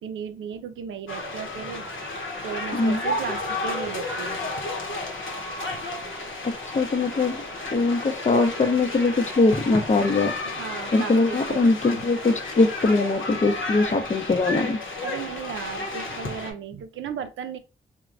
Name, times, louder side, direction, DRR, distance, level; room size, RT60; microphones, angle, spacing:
voice 1, 0.0-1.9 2.4-4.4 10.4-11.7 13.3-13.4 15.0-17.6, right 7 dB, 80° right, 0.4 m, -35 dB
sound 1, 1.1-16.5, left 2 dB, 80° left, 0.8 m, -32 dB
voice 2, 6.7-7.4 7.7-10.3 10.9-14.8, left 3 dB, 35° left, 0.6 m, -21 dB
3.0 x 2.1 x 2.4 m
supercardioid pair, 45°, 20 cm